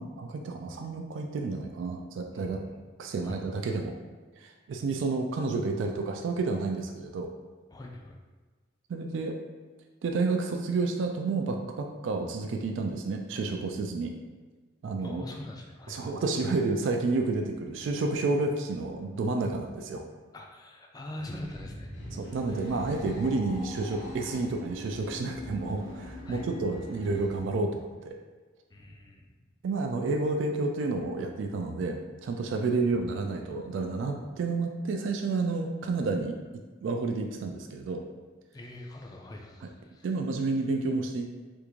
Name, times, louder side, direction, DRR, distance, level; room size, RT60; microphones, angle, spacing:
voice 1, 0.0-2.6 3.0-3.9 4.4-7.3 8.9-9.4 10.0-14.1 14.8-15.2 15.9-20.0 22.1-28.2 29.6-36.4 36.8-38.0 39.6-39.7 40.0-41.3, right 3 dB, 70° right, 3 dB, 0.3 m, -30 dB
voice 2, 2.3-2.8 3.2-3.6 7.7-8.2 15.0-16.1 20.3-21.9 22.5-22.8 26.3-26.4 28.7-29.3 38.5-40.1, left 1 dB, 20° left, 1 dB, 0.3 m, -43 dB
sound 1, 21.3-27.4, left 1 dB, 70° left, 0.7 m, -42 dB
3.5 x 2.4 x 3.0 m, 1.4 s
head